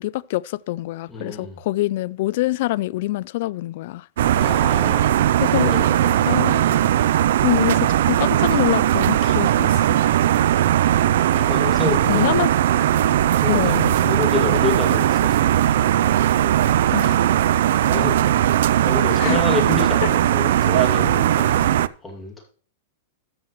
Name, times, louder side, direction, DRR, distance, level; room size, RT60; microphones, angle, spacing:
voice 1, 0.0-4.1 5.4-5.7 6.3-6.6 7.4-10.0 11.9-12.5 13.5-13.9 16.9-17.2 19.2-19.4, left 18 dB, 55° left, 0.3 m, -25 dB
voice 2, 1.1-1.6 4.3-6.4 11.2-12.2 12.9-15.7 16.4-16.5 17.7-18.3 18.8-22.4, left 3 dB, 10° left, 2.4 m, -29 dB
sound 1, 4.2-21.9, right 12 dB, 70° right, 0.4 m, -18 dB
13.0 x 7.6 x 3.1 m
supercardioid pair, 150°, 0 cm